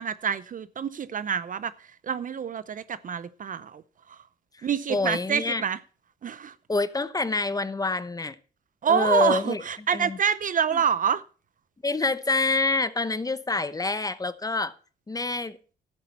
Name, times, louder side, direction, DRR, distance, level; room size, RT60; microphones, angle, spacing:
voice 1, 0.0-3.8 4.1-4.2 4.6-5.8 6.2-6.5 8.8-11.2, right 7 dB, 40° right, 0.6 m, -27 dB
voice 2, 4.6-5.6 6.7-8.4 8.9-9.6 9.9-10.2 10.7-10.8 11.8-14.7 15.1-15.6, left 3 dB, 20° left, 0.8 m, -27 dB
11.5 x 8.8 x 4.1 m
cardioid pair, 90°, 20 cm